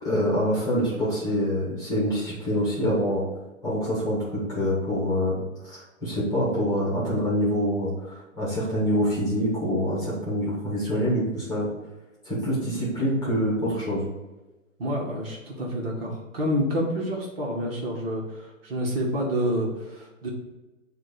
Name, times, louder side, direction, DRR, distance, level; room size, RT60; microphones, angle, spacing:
voice 1, 0.0-3.2 3.6-11.7 12.2-14.1, equal, 10° left, -6 dB, 1.7 m, -26 dB
voice 2, 14.8-20.3, equal, 45° right, -2 dB, 1.8 m, -28 dB
7.4 x 3.0 x 5.1 m, 1.1 s
hypercardioid pair, 155°, 40 cm